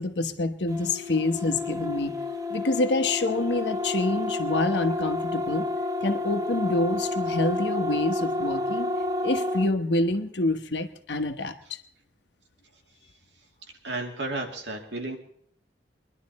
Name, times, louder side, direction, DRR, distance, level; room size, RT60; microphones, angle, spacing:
voice 1, 0.0-2.2 2.5-5.7 6.0-8.9 9.2-11.8, left 2 dB, 75° left, 7 dB, 1.2 m, -27 dB
sound 1, 0.7-9.7, left 2 dB, 20° right, 0.8 m, -30 dB
voice 2, 13.8-15.2, right 2 dB, 80° right, 2 dB, 2.4 m, -32 dB
22.5 x 11.0 x 4.2 m, 0.64 s
head